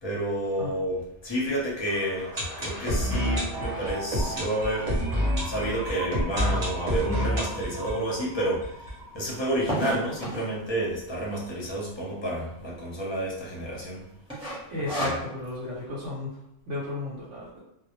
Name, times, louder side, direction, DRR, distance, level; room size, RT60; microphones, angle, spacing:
voice 1, 0.0-5.0 5.4-14.0 15.0-15.1, right 1 dB, 30° left, -5 dB, 0.6 m, -30 dB
sound 1, 1.9-9.6 9.9-10.0 10.2-10.3 10.8-10.9, equal, 45° right, 0.8 m, -29 dB
sound 2, 7.2-7.3 7.9-8.0 8.1-8.2 8.5-10.6 11.3-11.7 12.0-12.1 12.3-12.4 13.0-13.3 13.6-13.9 14.3-15.6, equal, 5° right, 0.7 m, -32 dB
voice 2, 14.7-16.4 16.7-17.6, left 2 dB, 80° right, -6 dB, 1.0 m, -33 dB
2.1 x 2.1 x 2.9 m, 0.80 s
omnidirectional pair, 1.2 m